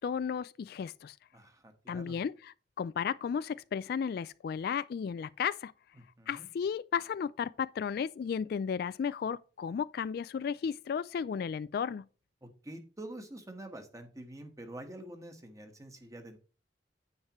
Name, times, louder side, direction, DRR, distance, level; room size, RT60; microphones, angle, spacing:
voice 1, 0.0-1.1 1.9-2.3 2.8-5.7 6.3-12.0, left 7 dB, 55° left, 0.3 m, -34 dB
voice 2, 1.3-2.2 5.9-6.5 12.4-16.4, right 1 dB, 20° right, 1.3 m, -47 dB
9.6 x 8.1 x 3.0 m
head